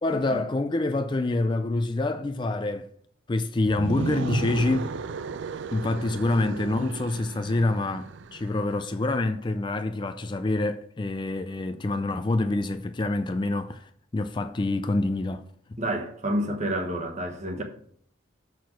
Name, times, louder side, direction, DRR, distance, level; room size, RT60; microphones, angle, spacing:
voice 1, 0.0-2.9 3.3-5.1 5.7-15.8, left 2 dB, 25° left, 0.3 m, -27 dB
sound 1, 3.6-8.7, right 5 dB, 70° right, 0.4 m, -34 dB
voice 2, 15.8-17.6, right 1 dB, 35° right, 1.3 m, -29 dB
6.6 x 6.0 x 6.1 m
head